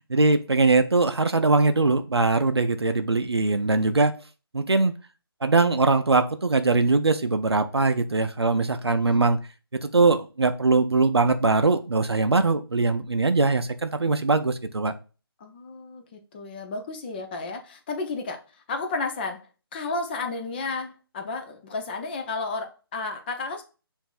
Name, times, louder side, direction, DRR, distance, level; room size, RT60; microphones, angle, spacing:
voice 1, 0.0-4.1 4.5-4.9 5.4-9.4 9.8-14.9, right 3 dB, 85° right, 0.5 m, -21 dB
voice 2, 8.9-9.3 15.4-18.4 18.7-19.4 19.7-23.6, left 3 dB, 25° left, 0.7 m, -32 dB
6.8 x 2.7 x 2.4 m
figure-of-eight pair, 145°, 13 cm